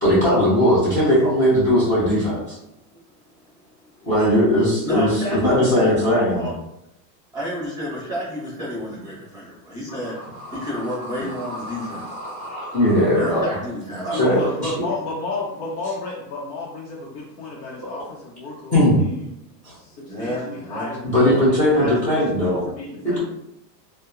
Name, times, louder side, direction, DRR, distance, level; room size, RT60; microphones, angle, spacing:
voice 1, 0.0-2.6 4.1-6.5 12.7-13.4 14.1-14.7 18.7-19.0 19.6-19.7 21.0-22.6 23.0-23.2, equal, 15° left, -10 dB, 0.7 m, -18 dB
voice 2, 4.8-6.5 7.3-10.2 10.5-12.0 13.1-14.5 20.1-20.9 21.7-22.0, equal, 10° right, -7 dB, 1.0 m, -30 dB
sound 1, 9.9-16.2, equal, 25° right, 1.3 m, -38 dB
voice 3, 14.1-19.3 19.7-23.2, left 2 dB, 75° left, -4 dB, 0.7 m, -32 dB
2.8 x 2.1 x 2.3 m, 0.82 s
supercardioid pair, 150°, 49 cm